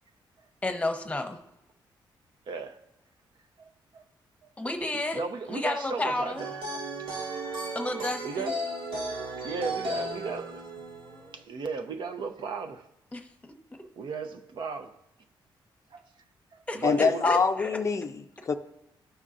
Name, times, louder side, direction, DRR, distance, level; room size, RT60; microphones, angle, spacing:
voice 1, 0.6-1.4 4.6-5.2 5.5-6.4 7.7-8.5 13.1-13.2 16.7-17.7, left 2 dB, 15° left, 0.9 m, -31 dB
voice 2, 2.5-2.8 3.6-4.0 4.4-4.5 4.9-6.5 8.2-8.6 8.9-9.0 9.4-10.6 11.3-12.9 14.0-14.9 15.9-16.1 16.5-17.3, right 5 dB, 65° right, 0.7 m, -36 dB
sound 1, 6.4-11.4, right 1 dB, 80° right, 1.8 m, -35 dB
voice 3, 16.8-18.5, left 5 dB, 35° left, 0.4 m, -25 dB
15.0 x 5.4 x 2.5 m
cardioid pair, 105°, 9 cm